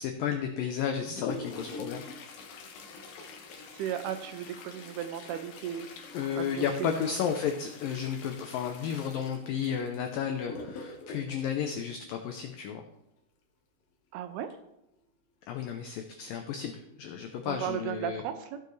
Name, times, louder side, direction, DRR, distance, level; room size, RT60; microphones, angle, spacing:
voice 1, 0.0-2.1 6.1-12.8 15.5-18.2, left 8 dB, 85° left, 5 dB, 1.9 m, -33 dB
Toilet flush, 0.7-12.6 14.5-14.6 14.9-15.0 15.8-15.9 16.6-16.8 17.3-17.4, left 3 dB, 65° left, 2.7 m, -45 dB
voice 2, 3.6-5.9 6.4-7.1 14.1-14.5 17.5-18.6, right 10 dB, 80° right, 9 dB, 2.4 m, -35 dB
15.5 x 6.9 x 3.2 m, 0.87 s
omnidirectional pair, 4.9 m